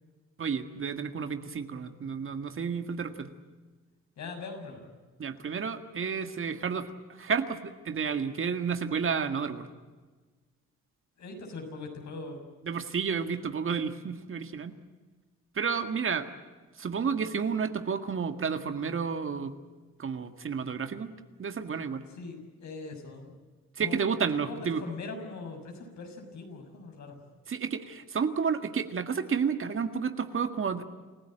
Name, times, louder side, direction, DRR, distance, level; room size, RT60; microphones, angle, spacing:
voice 1, 0.4-3.3 5.2-9.7 12.7-14.7 15.6-16.3 16.8-19.5 20.0-21.1 21.4-22.0 23.8-24.8 27.5-30.8, right 6 dB, 45° right, 8 dB, 1.9 m, -31 dB
voice 2, 4.2-4.9 11.2-12.4 22.1-23.3 23.8-24.0 24.4-27.2, left 3 dB, 65° left, 3 dB, 6.9 m, -41 dB
28.5 x 16.0 x 9.0 m, 1.3 s
cardioid pair, 90°, 30 cm